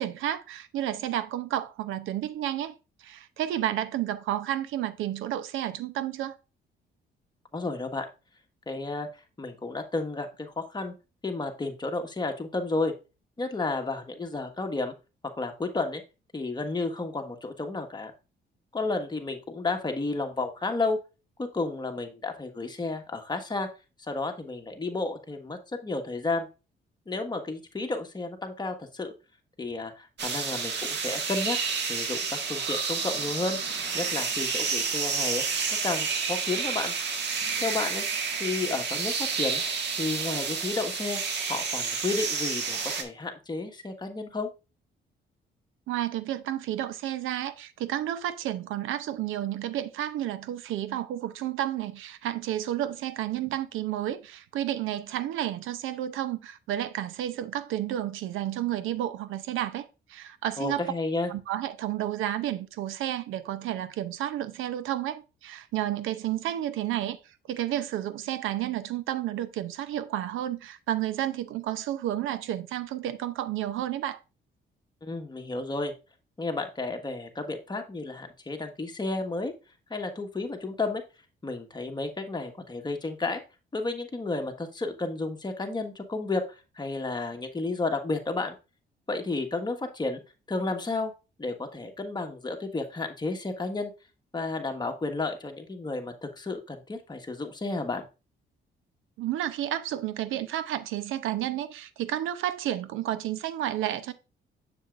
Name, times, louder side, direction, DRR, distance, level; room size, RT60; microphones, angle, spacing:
voice 1, 0.0-2.7 3.0-6.4 45.9-60.9 61.3-67.2 67.5-74.2 99.2-104.1, right 12 dB, 85° right, 0.7 m, -31 dB
voice 2, 7.5-8.1 8.7-10.9 11.2-12.9 13.4-14.9 15.2-16.0 16.3-18.1 18.7-21.0 21.4-23.7 24.1-26.5 27.1-29.1 29.6-33.6 33.9-35.4 35.8-36.9 37.6-38.0 38.4-39.6 40.0-41.2 41.5-44.5 60.6-61.3 75.0-75.9 76.4-79.5 79.9-81.0 81.4-83.4 83.7-88.5 89.1-90.2 90.5-91.1 91.4-93.9 94.3-98.0, left 3 dB, 20° left, 1.4 m, -32 dB
sound 1, 30.2-43.0, right 5 dB, 60° right, 1.5 m, -30 dB
7.2 x 7.1 x 2.5 m
cardioid pair, 90°, 20 cm